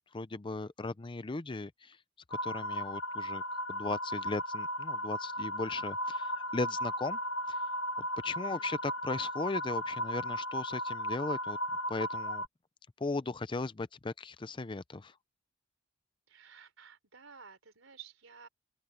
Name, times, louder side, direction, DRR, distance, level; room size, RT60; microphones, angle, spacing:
voice 1, 0.0-2.0 2.3-3.4 3.7-7.2 7.5-7.6 8.0-11.6 11.9-12.4 13.0-15.1, left 3 dB, 25° left, 0.5 m, -37 dB
sound 1, 2.3-12.5, equal, 65° left, 1.2 m, -36 dB
voice 2, 8.4-8.8 16.3-18.5, right 7 dB, 80° right, 3.9 m, -54 dB
open air
head